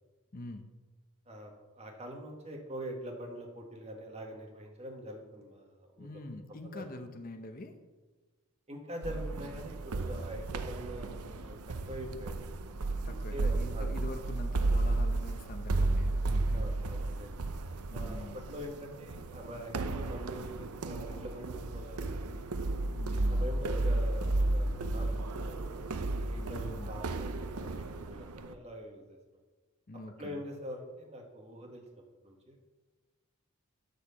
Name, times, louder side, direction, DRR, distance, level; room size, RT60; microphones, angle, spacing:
voice 1, 0.3-0.7 6.0-7.7 13.1-16.7 17.9-18.4 23.0-23.5 26.4-26.9 29.9-30.4, left 2 dB, 40° left, 6 dB, 0.8 m, -45 dB
voice 2, 1.3-6.2 6.7-6.9 8.7-11.6 11.9-12.4 13.1-13.9 16.5-17.3 17.9-22.3 23.1-25.6 26.3-27.5 27.8-29.2 30.2-32.7, equal, 30° right, 1 dB, 1.8 m, -44 dB
sound 1, 9.0-28.5, right 2 dB, 85° right, 0.7 m, -33 dB
12.0 x 4.8 x 7.0 m, 1.3 s
head